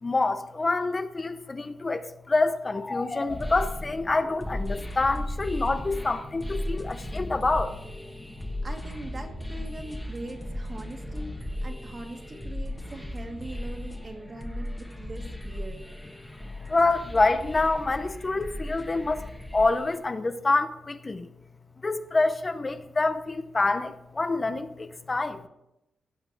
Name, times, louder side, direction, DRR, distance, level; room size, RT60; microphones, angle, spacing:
voice 1, 0.0-7.7 8.4-8.5 16.7-19.2 19.5-21.3 21.8-25.4, left 3 dB, 25° left, 10 dB, 0.7 m, -26 dB
sound 1, 3.3-20.0, left 1 dB, 10° left, 1.5 m, -36 dB
voice 2, 8.6-15.8, right 2 dB, 35° right, 3 dB, 1.8 m, -41 dB
16.5 x 5.8 x 5.9 m, 0.87 s
cardioid pair, 115°, 0 cm